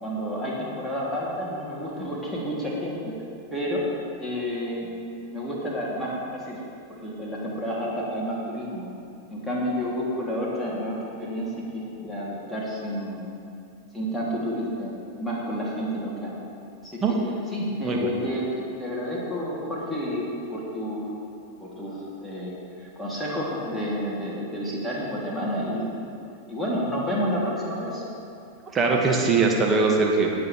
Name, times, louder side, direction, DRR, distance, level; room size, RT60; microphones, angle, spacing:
voice 1, 0.0-3.1 3.5-3.8 4.2-4.9 5.3-6.6 7.0-8.9 9.3-13.2 13.9-16.4 16.8-17.0 17.5-21.1 21.6-26.1 26.5-28.0, equal, ahead, -6 dB, 2.9 m, -30 dB
voice 2, 28.7-30.3, right 4 dB, 20° right, -1 dB, 1.8 m, -21 dB
19.0 x 7.9 x 3.4 m, 2.5 s
figure-of-eight pair, 90°, 0 cm